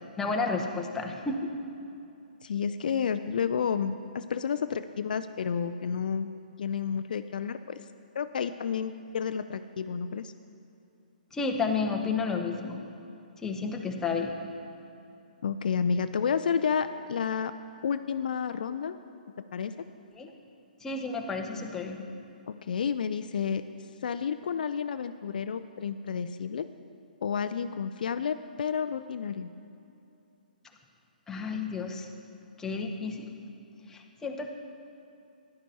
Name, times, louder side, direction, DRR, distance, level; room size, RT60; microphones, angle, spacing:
voice 1, 0.2-1.5 11.3-12.8 13.4-14.3 20.2-20.3 20.8-22.1 31.3-32.1 32.6-33.3 33.9-34.5, left 4 dB, 10° left, 1 dB, 0.8 m, -31 dB
voice 2, 2.4-6.3 6.6-7.8 8.1-10.3 15.4-17.5 17.8-19.0 19.5-19.9 22.5-23.6 24.0-26.7 27.2-29.5, left 7 dB, 65° left, 11 dB, 0.3 m, -30 dB
11.5 x 10.5 x 4.1 m, 2.7 s
hypercardioid pair, 135°, 5 cm